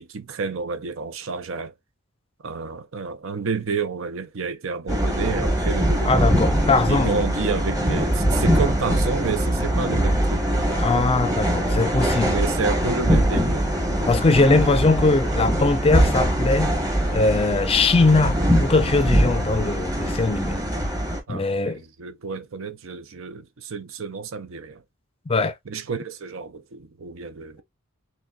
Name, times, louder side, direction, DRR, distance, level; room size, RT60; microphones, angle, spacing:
voice 1, 0.0-1.7 2.4-6.3 6.9-11.0 12.3-13.7 21.3-24.8 25.7-27.6, right 5 dB, 65° right, 0.6 m, -30 dB
sound 1, 4.9-21.2, equal, 15° right, 1.0 m, -22 dB
voice 2, 6.0-7.2 10.8-12.4 14.1-16.7 17.1-20.6 21.3-21.8 25.3-25.5, left 3 dB, 25° left, 0.5 m, -20 dB
6.2 x 2.2 x 2.4 m
head